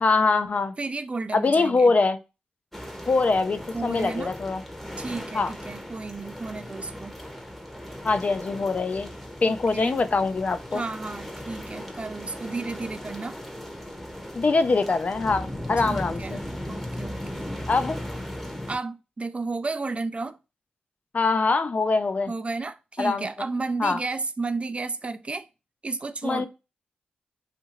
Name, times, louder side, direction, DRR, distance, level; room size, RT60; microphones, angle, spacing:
voice 1, 0.0-0.7 1.3-2.2 3.1-4.6 5.3-5.5 8.0-9.1 9.4-10.8 14.3-16.4 17.7-18.0 21.1-22.3 23.0-23.3 23.8-24.0 26.2-26.5, left 3 dB, 45° left, 0.3 m, -23 dB
voice 2, 0.8-1.9 3.7-4.3 5.0-7.1 9.5-10.0 10.7-13.4 15.9-16.4 16.7-17.4 18.7-20.4 22.3-25.5 25.8-26.5, right 3 dB, 35° right, 0.3 m, -32 dB
sound 1, 2.7-18.8, equal, 5° left, 0.7 m, -37 dB
2.7 x 2.5 x 2.9 m
supercardioid pair, 45°, 3 cm